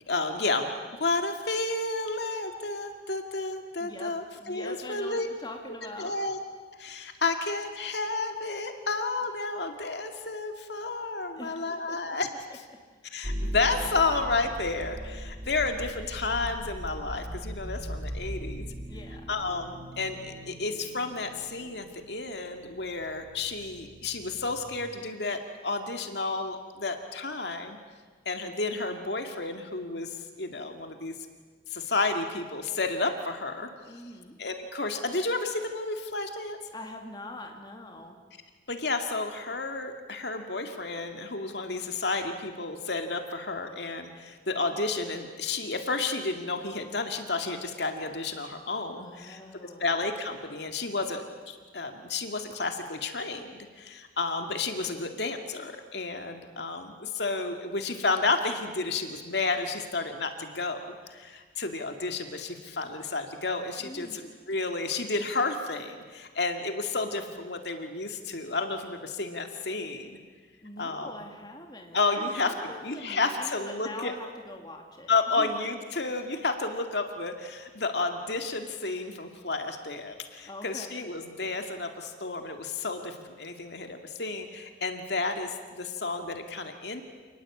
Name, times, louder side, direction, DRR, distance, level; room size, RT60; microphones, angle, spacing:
voice 1, 0.1-5.3 5.7-6.4 6.8-12.3 13.1-18.6 19.3-27.8 28.3-31.1 31.7-33.7 34.4-36.6 38.7-70.2 70.8-71.1 71.9-72.5 72.8-74.1 75.1-87.0, left 3 dB, 70° left, 5 dB, 2.2 m, -31 dB
voice 2, 3.8-6.1 11.3-12.0 18.9-19.3 33.9-34.4 36.7-38.2 49.0-49.9 63.8-64.2 70.6-75.5 80.4-81.0, left 1 dB, 25° left, 2 dB, 2.7 m, -43 dB
sound 1, 13.2-24.8, equal, 45° right, 3.1 m, -39 dB
28.0 x 20.0 x 8.5 m, 1.5 s
head